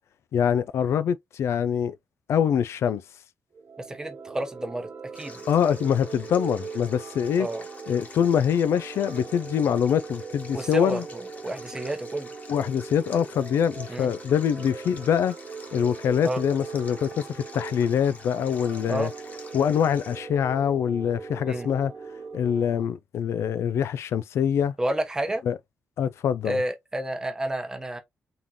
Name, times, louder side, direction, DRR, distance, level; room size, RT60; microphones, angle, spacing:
voice 1, 0.3-1.9 2.3-3.0 5.5-7.5 7.9-11.0 12.5-15.4 15.7-19.1 19.5-21.9 22.3-24.7 25.5-25.6 26.0-26.6, left 8 dB, 70° left, 0.4 m, -24 dB
sound 1, 3.5-22.8, right 5 dB, 40° right, 0.7 m, -40 dB
voice 2, 3.8-5.4 7.4-7.6 10.5-12.3 13.9-14.1 16.2-16.4 18.9-19.1 21.5-21.7 24.8-25.4 26.4-28.0, right 1 dB, 15° right, 0.9 m, -30 dB
Stream, 5.2-20.2, left 3 dB, 35° left, 1.3 m, -48 dB
3.8 x 3.7 x 2.9 m
wide cardioid pair, 165°, 5 cm